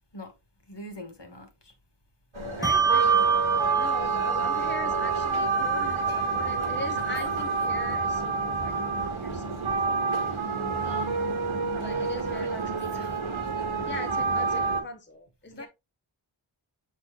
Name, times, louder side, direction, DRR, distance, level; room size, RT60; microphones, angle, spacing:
voice 1, 0.7-1.7 10.3-10.9 12.0-12.1 12.4-13.2 15.5-15.7, equal, 55° left, 1.7 m, -44 dB
sound 1, 2.3-14.8, right 4 dB, 75° right, 1.4 m, -29 dB
voice 2, 2.5-10.6 10.8-11.3 11.7-13.3 13.8-15.7, left 2 dB, 20° left, 0.8 m, -41 dB
Bell, 2.6-9.5, right 6 dB, 5° right, 0.7 m, -28 dB
7.0 x 4.4 x 3.1 m
wide cardioid pair, 45°, 50 cm